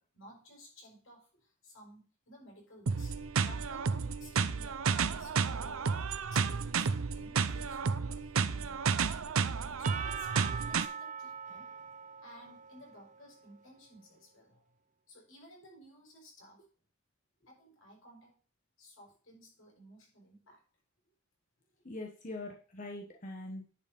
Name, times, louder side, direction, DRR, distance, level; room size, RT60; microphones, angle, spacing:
voice 1, 0.0-5.9 6.3-9.4 9.8-11.8 12.2-14.7 15.1-16.7 17.5-18.4 18.8-20.6, equal, 80° left, -1 dB, 5.8 m, -56 dB
sound 1, 2.9-10.9, right 5 dB, 90° right, 0.6 m, -32 dB
Percussion / Church bell, 9.8-13.7, right 7 dB, 35° right, 0.6 m, -43 dB
voice 2, 21.8-23.7, left 2 dB, 40° left, 1 dB, 1.2 m, -42 dB
10.5 x 5.2 x 5.4 m, 0.40 s
head